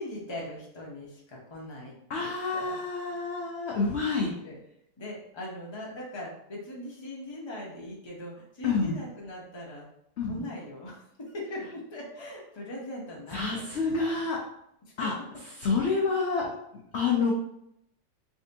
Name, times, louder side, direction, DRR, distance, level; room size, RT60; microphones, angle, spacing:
voice 1, 0.0-2.8 3.1-3.4 4.4-4.6 5.0-9.9 10.2-14.2 14.8-15.1, left 1 dB, 25° left, -3 dB, 0.7 m, -40 dB
voice 2, 2.1-4.3 8.6-9.0 10.2-10.5 13.3-14.4 15.0-15.1 15.6-16.5 16.9-17.3, left 4 dB, 65° left, -2 dB, 0.6 m, -28 dB
3.4 x 3.4 x 2.8 m, 0.75 s
omnidirectional pair, 1.9 m